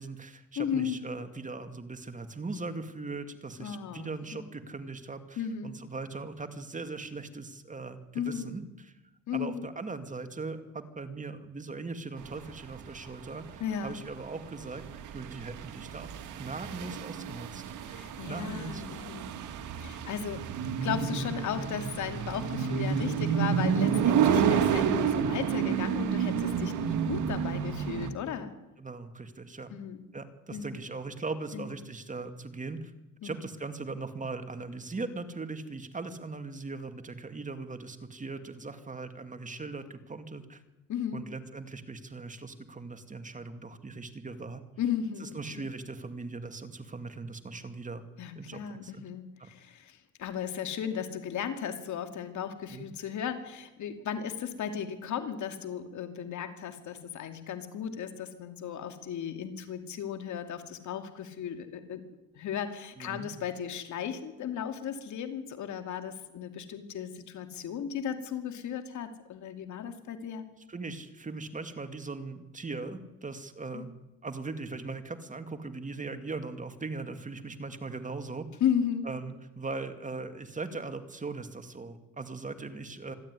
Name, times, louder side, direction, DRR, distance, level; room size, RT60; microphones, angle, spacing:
voice 1, 0.0-8.9 9.3-17.6 18.3-18.8 28.8-29.8 30.1-32.9 33.2-40.6 41.1-44.6 45.2-48.0 48.4-49.0 49.4-49.5 52.7-52.9 63.0-63.3 70.7-73.9 74.2-78.5 79.0-83.1, right 3 dB, 25° right, 8 dB, 2.3 m, -39 dB
voice 2, 0.6-1.0 3.6-4.4 5.4-5.8 8.1-8.5 9.3-9.7 13.6-13.9 17.9-19.3 19.8-20.5 20.8-28.5 29.7-30.0 30.5-30.7 31.5-31.7 33.2-33.4 40.9-41.2 44.8-45.4 48.2-62.0 62.3-70.5 73.7-73.9 78.6-79.1, left 8 dB, 75° left, 7 dB, 2.7 m, -35 dB
sound 1, 12.3-28.1, right 7 dB, 80° right, 2.0 m, -30 dB
26.5 x 12.0 x 9.7 m, 1.0 s
cardioid pair, 90°, 30 cm